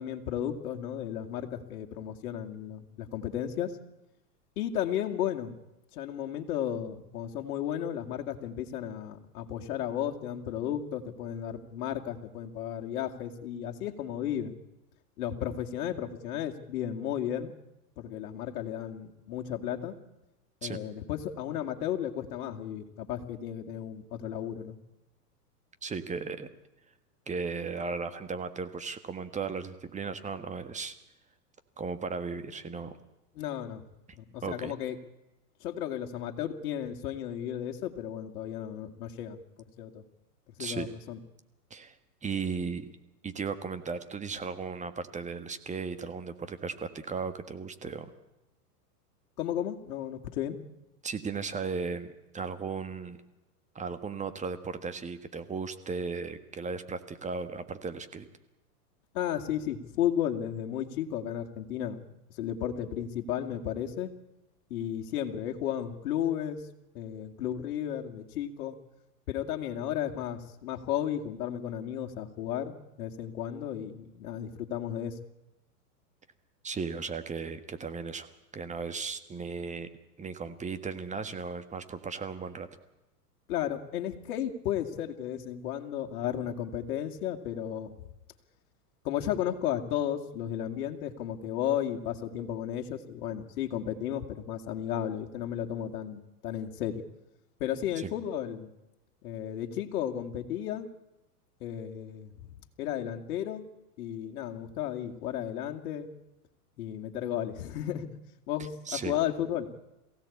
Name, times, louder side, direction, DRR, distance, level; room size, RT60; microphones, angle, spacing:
voice 1, 0.0-3.7 4.6-5.6 5.9-14.5 15.2-17.5 18.0-20.0 20.6-24.8 33.3-33.8 34.1-35.0 35.6-39.4 39.8-40.0 40.6-41.2 49.4-50.6 59.1-62.0 62.4-64.1 64.7-66.6 66.9-68.8 69.3-75.1 83.5-87.9 89.0-97.0 97.6-98.7 99.2-100.9 101.6-102.5 102.8-103.6 104.0-106.1 106.8-108.1 108.5-109.7, left 10 dB, 65° left, 3 dB, 2.5 m, -34 dB
voice 2, 25.8-26.5 27.3-30.9 31.8-33.0 34.4-34.7 40.6-40.9 41.7-42.0 42.2-42.9 43.2-48.1 51.0-53.2 53.7-58.3 76.6-79.9 80.2-82.7 98.0-98.1 108.9-109.1, right 5 dB, 15° right, 11 dB, 1.6 m, -36 dB
22.5 x 16.5 x 8.6 m, 0.98 s
hypercardioid pair, 115°, 48 cm